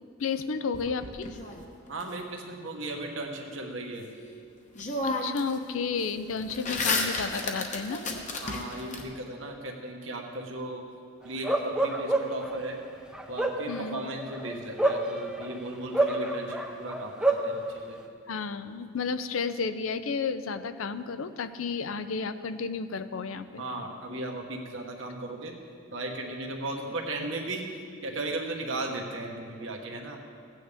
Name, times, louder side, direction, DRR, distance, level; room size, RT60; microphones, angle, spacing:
voice 1, 0.2-1.4 5.0-8.0 13.7-14.0 18.3-23.6, left 5 dB, 85° left, 11 dB, 0.5 m, -32 dB
sound 1, 0.7-2.0 4.2-4.3 4.7-5.6 5.9-9.0, left 3 dB, 35° left, 1.0 m, -32 dB
voice 2, 1.9-4.1 8.4-10.8 11.2-12.8 13.3-18.0 23.6-25.5 25.9-27.6 28.0-30.2, right 2 dB, 70° right, 1 dB, 1.3 m, -36 dB
Bark, 11.4-12.5 13.1-15.5 15.9-17.5, right 2 dB, 5° right, 0.6 m, -27 dB
16.0 x 9.2 x 3.5 m, 2.2 s
head